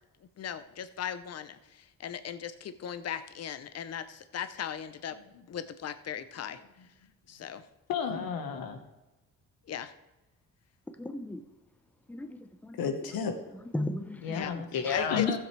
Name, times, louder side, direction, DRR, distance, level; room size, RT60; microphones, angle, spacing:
voice 1, 0.4-5.2 5.5-6.6 7.3-7.6 9.7-9.9 14.3-14.5 14.9-15.4, left 9 dB, 45° left, 0.7 m, -38 dB
voice 2, 7.9-8.8 12.8-13.3 14.2-15.4, left 6 dB, 85° left, 1.4 m, -31 dB
voice 3, 10.9-11.4 12.1-12.8 13.7-14.4 14.8-15.0, left 1 dB, 5° left, 0.7 m, -36 dB
15.0 x 7.6 x 3.3 m
cardioid pair, 100°, 35 cm